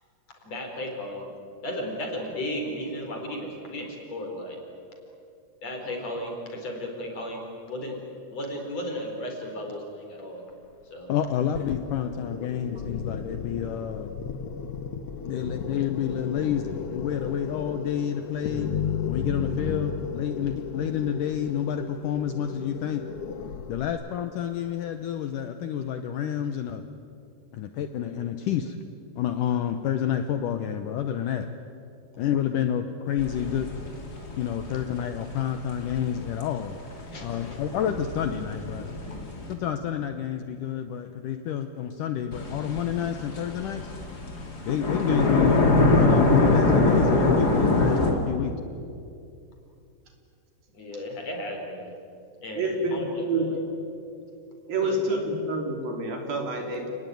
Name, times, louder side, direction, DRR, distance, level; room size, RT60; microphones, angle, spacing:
voice 1, 0.4-1.3 1.6-4.6 5.6-7.4 7.7-8.0 8.3-10.4 10.9-11.1 37.1-37.7 50.7-51.9 52.4-53.6 54.8-55.2, left 1 dB, 45° left, 2 dB, 5.2 m, -35 dB
voice 2, 11.1-14.1 15.2-18.7 19.1-23.0 23.7-26.8 27.5-28.8 29.2-31.5 32.2-33.7 34.4-36.8 37.2-38.9 39.5-43.9 44.7-48.6, left 9 dB, 70° left, 8 dB, 2.2 m, -29 dB
sound 1, 11.5-23.9, left 6 dB, 90° left, 1.3 m, -34 dB
sound 2, 33.2-39.5 42.3-48.1, left 2 dB, 25° left, 2.9 m, -24 dB
voice 3, 52.5-53.5 54.7-56.9, right 2 dB, 70° right, 3 dB, 5.0 m, -28 dB
30.0 x 19.5 x 9.4 m, 2.5 s
omnidirectional pair, 4.4 m